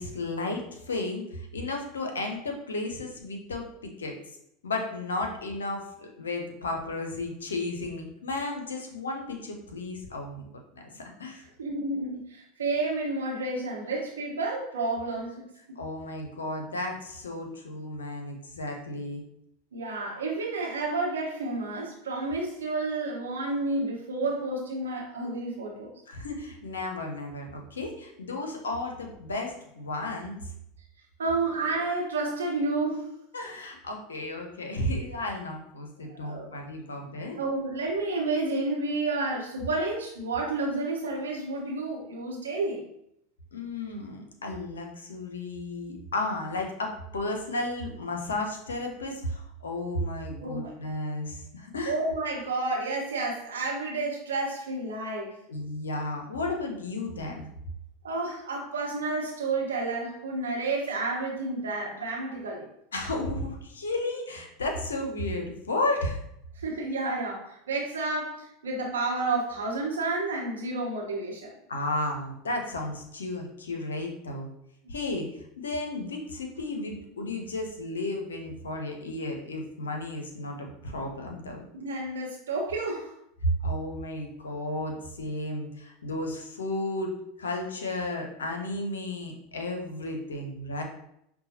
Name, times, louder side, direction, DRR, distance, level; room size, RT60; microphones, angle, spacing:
voice 1, 0.0-4.2 4.6-5.9 6.2-10.5 10.7-11.4 15.8-19.2 26.1-30.5 33.3-37.4 43.5-52.0 55.5-57.5 62.9-66.2 71.7-74.5 74.9-81.6 83.6-90.8, left 2 dB, 85° left, 3 dB, 0.7 m, -33 dB
voice 2, 11.6-15.8 19.7-25.9 31.2-33.1 36.1-36.5 37.4-42.8 50.4-50.7 51.9-55.4 58.0-62.7 66.6-71.5 74.8-74.9 81.7-83.1, right 3 dB, 85° right, -2 dB, 1.0 m, -30 dB
5.4 x 2.2 x 2.8 m, 0.76 s
hypercardioid pair, 85°, 0 cm